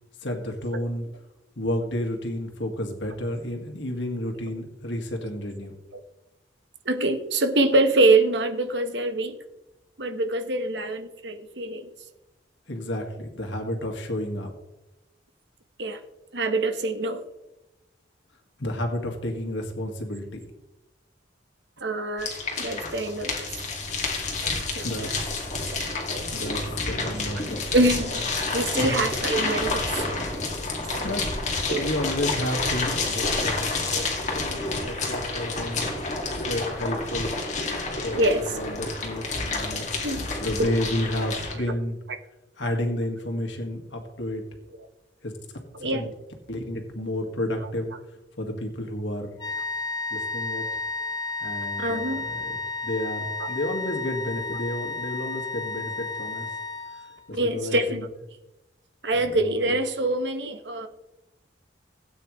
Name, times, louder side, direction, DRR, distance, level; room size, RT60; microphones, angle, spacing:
voice 1, 0.2-1.0 1.6-5.7 12.7-14.5 18.6-20.3 24.8-25.1 26.3-26.6 26.9-27.9 28.7-28.8 31.0-31.2 31.7-35.9 36.5-37.3 38.0-39.9 40.4-42.0 42.6-44.4 45.2-45.3 45.9-46.1 46.5-47.9 48.4-49.3 50.1-50.7 51.4-52.3 52.8-56.5 57.3-58.0, left 1 dB, 75° left, 3 dB, 2.0 m, -31 dB
voice 2, 6.8-9.4 10.0-11.9 15.8-16.0 16.3-17.2 21.8-22.3 22.6-23.5 24.7-25.1 27.7-28.2 28.5-30.1 31.1-31.2 31.7-31.9 38.2-38.6 40.0-40.3 40.6-40.7 41.2-41.4 44.8-44.9 45.7-46.1 51.8-52.3 53.4-53.5 57.3-58.1 59.0-60.9, right 2 dB, 65° right, 7 dB, 1.3 m, -25 dB
sound 1, 22.2-41.5, left 3 dB, 40° left, 2.4 m, -29 dB
sound 2, 49.4-57.3, left 3 dB, 20° left, 1.3 m, -32 dB
17.5 x 9.1 x 3.3 m, 0.99 s
head